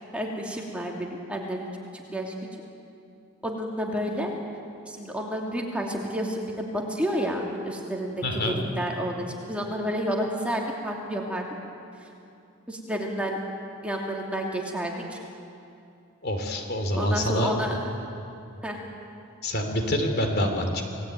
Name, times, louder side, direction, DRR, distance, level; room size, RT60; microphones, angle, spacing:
voice 1, 0.1-1.7 1.9-2.3 3.4-4.3 4.9-11.5 12.7-13.4 13.8-15.2 16.9-17.8 18.6-18.8, equal, 5° right, -1 dB, 2.7 m, -30 dB
voice 2, 8.2-8.6 16.2-17.5 19.4-20.8, equal, 50° left, 4 dB, 3.2 m, -26 dB
28.5 x 19.0 x 9.2 m, 2.6 s
head